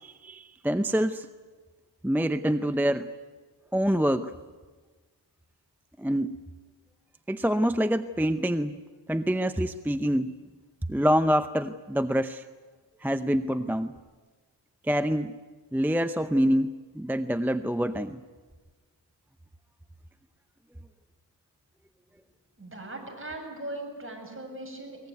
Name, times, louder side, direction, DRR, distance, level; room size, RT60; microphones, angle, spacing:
voice 1, 0.0-1.3 2.0-3.1 3.7-4.3 6.0-6.4 7.3-8.7 9.1-10.3 10.9-12.4 13.0-13.9 14.8-15.3 15.7-18.2, equal, 5° right, 10 dB, 0.7 m, -26 dB
voice 2, 22.6-25.1, right 1 dB, 30° right, 2 dB, 7.5 m, -39 dB
22.5 x 20.5 x 9.4 m, 1.4 s
cardioid pair, 70°, 42 cm